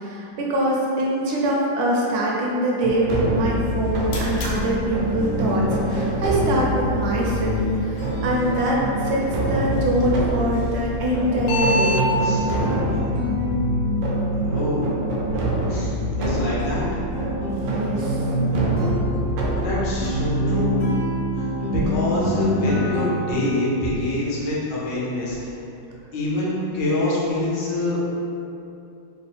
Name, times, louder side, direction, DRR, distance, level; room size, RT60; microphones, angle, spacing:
voice 1, 0.0-12.0 17.6-18.2, right 1 dB, 70° right, -3 dB, 1.0 m, -24 dB
sound 1, 2.8-21.5, equal, 85° right, 1.4 m, -27 dB
sound 2, 3.6-12.1, equal, 90° left, 1.4 m, -32 dB
sound 3, 3.9-23.7, equal, 50° left, 0.6 m, -27 dB
voice 2, 14.5-14.9 15.2-15.3 15.7-15.9 16.2-16.8 19.6-20.7 21.4-25.6 26.1-28.0, left 1 dB, 70° left, -7 dB, 1.5 m, -25 dB
3.6 x 2.1 x 4.1 m, 2.6 s
omnidirectional pair, 2.0 m